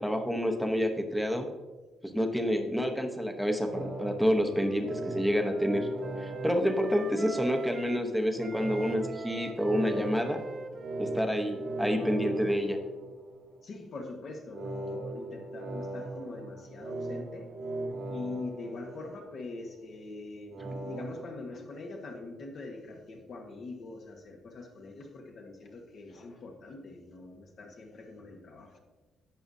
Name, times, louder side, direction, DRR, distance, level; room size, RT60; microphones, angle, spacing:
voice 1, 0.0-1.5 2.0-5.9 6.2-10.4 11.0-12.8, equal, ahead, 4 dB, 0.9 m, -28 dB
Wind instrument woodwind instrument, 3.7-8.1 8.4-12.9, right 4 dB, 30° right, 0.6 m, -44 dB
sound 1, 3.7-7.6 8.5-13.6 14.5-19.6 20.5-21.3, right 2 dB, 70° right, 1.6 m, -39 dB
voice 2, 13.6-17.5 18.1-28.8, left 3 dB, 45° left, 2 dB, 1.3 m, -43 dB
11.0 x 8.6 x 2.7 m, 1.2 s
cardioid pair, 155°, 0 cm